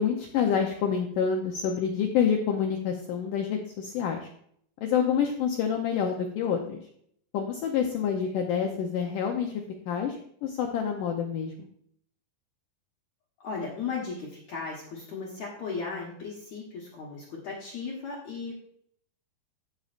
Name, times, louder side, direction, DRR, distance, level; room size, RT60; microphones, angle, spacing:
voice 1, 0.0-4.3 4.8-6.8 7.3-9.5 9.9-11.7, left 7 dB, 75° left, 2 dB, 2.0 m, -27 dB
voice 2, 13.4-18.5, left 5 dB, 60° left, -4 dB, 2.2 m, -36 dB
15.0 x 6.5 x 2.5 m, 0.66 s
omnidirectional pair, 4.5 m